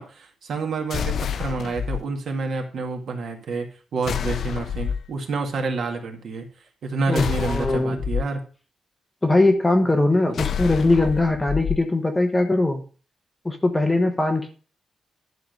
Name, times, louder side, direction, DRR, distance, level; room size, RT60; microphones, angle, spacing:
voice 1, 0.0-6.5 6.8-8.4 9.8-9.9, right 3 dB, 60° right, 2 dB, 2.0 m, -28 dB
sound 1, 0.9-2.0 4.0-5.1 7.1-8.2 10.3-11.8, left 8 dB, 55° left, 0.3 m, -28 dB
voice 2, 7.1-8.0 9.2-12.8 13.4-14.5, left 2 dB, 10° left, 5 dB, 1.0 m, -21 dB
11.5 x 3.9 x 6.4 m, 0.38 s
wide cardioid pair, 170°, 0 cm